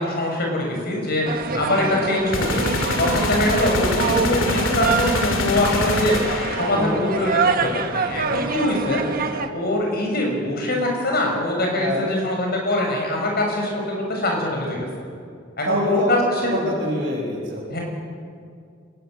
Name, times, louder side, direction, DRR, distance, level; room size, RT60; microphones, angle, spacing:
voice 1, 0.0-14.9 15.6-16.4 17.7-17.8, left 1 dB, 55° left, 0 dB, 6.8 m, -23 dB
sound 1, 1.2-9.5, right 5 dB, 50° right, 1.4 m, -26 dB
sound 2, 2.3-7.1, left 2 dB, 85° left, 2.3 m, -24 dB
voice 2, 6.8-7.1 11.8-12.1 15.7-16.2 16.5-17.8, equal, 65° right, -5 dB, 6.9 m, -25 dB
25.0 x 20.0 x 8.1 m, 2.2 s
head